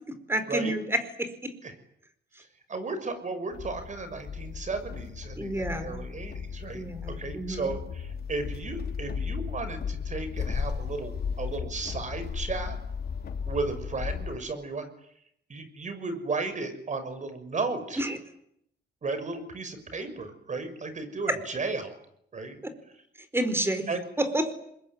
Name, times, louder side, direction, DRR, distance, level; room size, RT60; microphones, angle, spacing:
voice 1, 0.1-1.5 5.4-6.0 6.7-7.7 18.0-18.2 21.3-21.4 23.3-23.9 24.2-24.5, right 1 dB, 15° right, 11 dB, 4.7 m, -29 dB
voice 2, 2.7-12.8 13.5-14.9 15.5-18.0 19.0-21.9 22.3-22.6 23.9-24.0, right 3 dB, 45° right, 10 dB, 6.2 m, -34 dB
sound 1, 3.5-14.4, left 6 dB, 60° left, 3.3 m, -35 dB
25.0 x 22.0 x 9.9 m, 0.73 s
cardioid pair, 90°, 18 cm